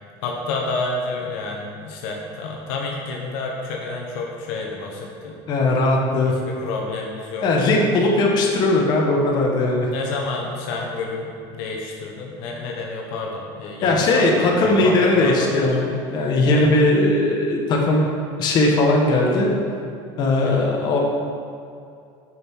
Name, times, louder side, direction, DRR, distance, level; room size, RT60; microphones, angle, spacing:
voice 1, 0.2-5.3 6.2-7.5 9.9-15.8 16.5-16.7 20.4-20.7, left 3 dB, 70° left, -1 dB, 1.2 m, -29 dB
voice 2, 5.5-6.3 7.4-9.9 13.8-18.0 18.4-19.5 20.2-21.0, left 2 dB, 40° left, -1 dB, 1.3 m, -19 dB
9.2 x 5.7 x 4.7 m, 2.4 s
cardioid pair, 145°, 11 cm